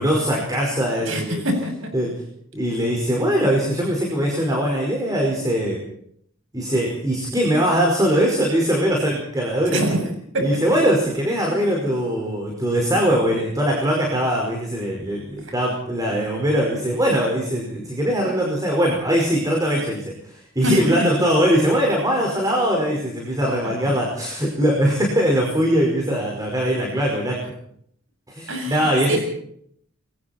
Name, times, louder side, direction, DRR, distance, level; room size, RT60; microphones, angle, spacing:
voice 1, 0.0-1.4 1.9-2.1 2.5-5.8 6.5-9.8 10.4-27.4 28.3-29.2, equal, 20° right, -1 dB, 5.2 m, -21 dB
voice 2, 1.1-1.9 9.7-10.0 10.3-10.5 20.6-21.1 23.6-23.7 28.5-29.2, equal, 70° right, 4 dB, 7.8 m, -24 dB
28.5 x 22.5 x 4.5 m, 0.67 s
head